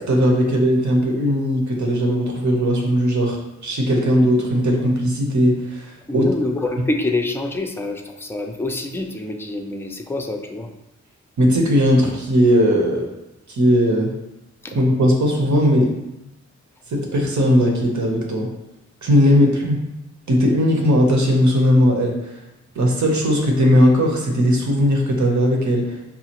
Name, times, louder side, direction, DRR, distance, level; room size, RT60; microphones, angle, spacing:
voice 1, 0.0-6.3 11.4-13.1 13.5-14.1 14.7-15.9 16.9-18.5 19.0-19.8 20.3-22.1 22.7-26.0, equal, 75° right, 0 dB, 0.9 m, -18 dB
voice 2, 6.1-10.7 14.6-14.7 19.4-19.5, left 2 dB, 10° left, 3 dB, 0.3 m, -26 dB
5.5 x 2.4 x 2.9 m, 0.92 s
wide cardioid pair, 105°, 29 cm